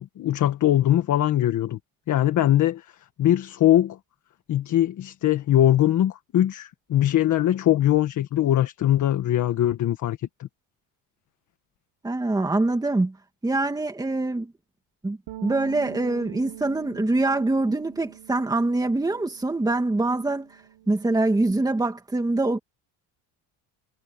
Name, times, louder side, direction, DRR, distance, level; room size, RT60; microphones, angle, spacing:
voice 1, 0.0-1.8 2.1-2.8 3.2-4.0 4.5-10.5, left 12 dB, 50° left, 1.6 m, -21 dB
voice 2, 12.0-13.2 13.4-14.5 15.0-20.5 20.9-22.6, right 2 dB, 10° right, 2.3 m, -24 dB
Bass guitar, 15.3-21.5, right 14 dB, 65° right, 6.3 m, -44 dB
cardioid pair, 140°, 39 cm